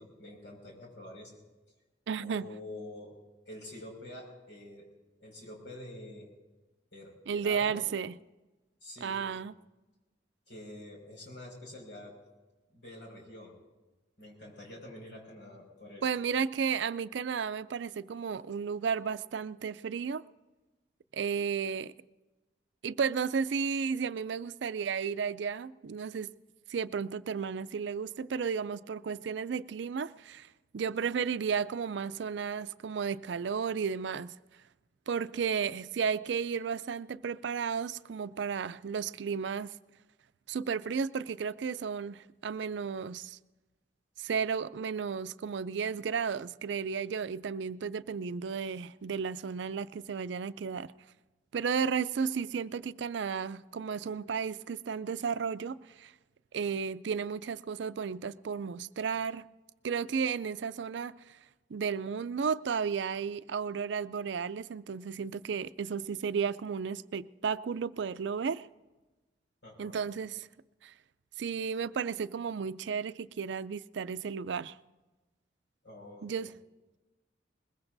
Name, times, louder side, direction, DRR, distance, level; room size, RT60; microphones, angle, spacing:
voice 1, 0.0-1.3 2.2-3.2 3.5-4.9 5.2-6.3 6.9-7.9 8.8-9.3 10.5-12.2 12.7-13.6 14.2-16.2 69.6-70.0 75.8-76.3, left 1 dB, 75° left, 5.5 m, -47 dB
voice 2, 2.1-2.5 7.3-8.2 9.0-9.5 16.0-20.2 21.1-21.9 22.8-26.3 26.7-30.5 30.7-34.3 35.1-39.7 40.5-43.4 44.2-50.9 51.5-56.1 56.5-59.4 59.8-61.1 61.7-68.7 69.8-70.5 70.8-70.9 71.4-74.8 76.2-76.5, right 6 dB, 75° right, 0.4 m, -33 dB
22.0 x 21.0 x 2.6 m
head